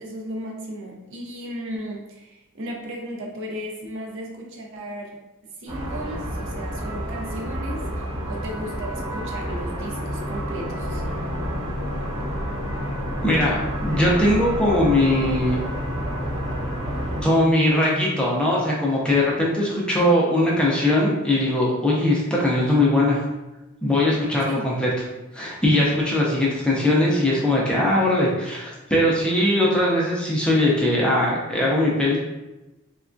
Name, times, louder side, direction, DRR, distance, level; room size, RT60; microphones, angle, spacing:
voice 1, 0.0-5.2 5.6-11.0 24.4-24.7, right 1 dB, 60° right, 0 dB, 0.5 m, -35 dB
sound 1, 5.7-17.3, equal, 20° right, 0.8 m, -30 dB
sound 2, 9.8-18.4, left 2 dB, 70° left, 0.3 m, -35 dB
voice 2, 13.2-13.6 13.8-15.6 17.2-23.2 23.8-24.9 25.3-32.2, left 1 dB, 5° left, -5 dB, 0.4 m, -20 dB
3.4 x 2.2 x 2.5 m, 1.0 s
head